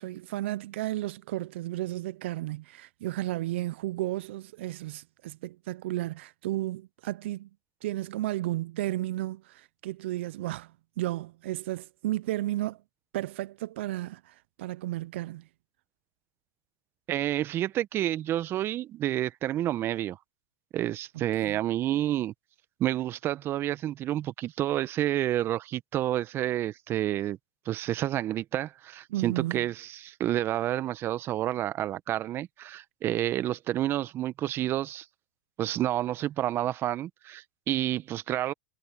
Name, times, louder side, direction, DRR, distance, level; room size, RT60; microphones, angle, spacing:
voice 1, 0.0-7.5 7.8-12.8 13.1-15.5 21.5-21.6 29.1-29.6, right 16 dB, 65° right, 0.9 m, -33 dB
voice 2, 17.1-20.2 20.7-22.3 22.8-27.4 27.7-35.0 35.6-38.5, right 13 dB, 35° right, 1.3 m, -29 dB
hypercardioid pair, 105°, 7 cm